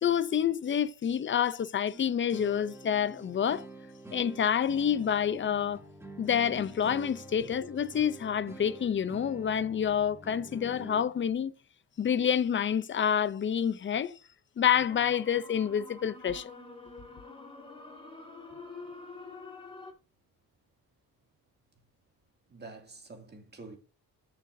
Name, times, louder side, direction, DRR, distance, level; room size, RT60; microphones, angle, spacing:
voice 1, 0.0-3.7 4.1-5.8 6.2-11.5 12.0-14.2 14.6-16.5, left 8 dB, 30° left, 0.5 m, -28 dB
sound 1, 1.9-11.0, right 1 dB, 5° right, 1.6 m, -47 dB
sound 2, 14.9-19.9, left 3 dB, 15° left, 2.0 m, -47 dB
voice 2, 18.5-18.9 22.5-23.8, right 3 dB, 25° right, 2.4 m, -48 dB
14.0 x 6.5 x 2.6 m
wide cardioid pair, 160°, 37 cm